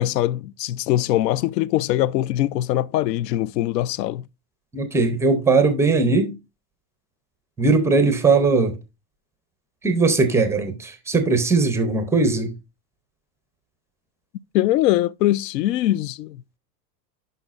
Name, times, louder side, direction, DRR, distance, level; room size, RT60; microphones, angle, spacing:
voice 1, 0.0-4.3 14.5-16.4, left 14 dB, 85° left, 0.6 m, -22 dB
voice 2, 4.7-6.4 7.6-8.7 9.8-12.5, right 3 dB, 5° right, 0.4 m, -19 dB
10.0 x 5.6 x 2.4 m
supercardioid pair, 145°, 49 cm